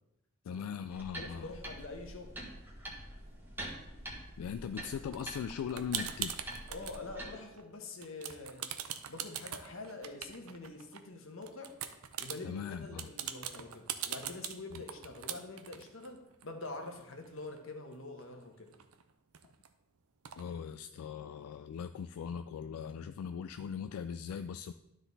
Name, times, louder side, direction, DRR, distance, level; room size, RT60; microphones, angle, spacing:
voice 1, 0.5-1.5 4.4-6.4 12.4-13.1 20.4-24.7, left 7 dB, 85° left, 10 dB, 0.3 m, -40 dB
sound 1, 0.9-7.3, right 1 dB, 10° right, 1.3 m, -45 dB
voice 2, 1.1-2.3 6.7-8.7 9.1-11.7 12.2-18.7, left 2 dB, 65° left, 4 dB, 1.2 m, -45 dB
sound 2, 5.1-7.0 7.4-11.0 11.4-17.6 17.9-18.0 18.2-19.7 20.2-20.4, right 10 dB, 85° right, 0.6 m, -42 dB
12.0 x 4.0 x 4.0 m, 0.89 s
head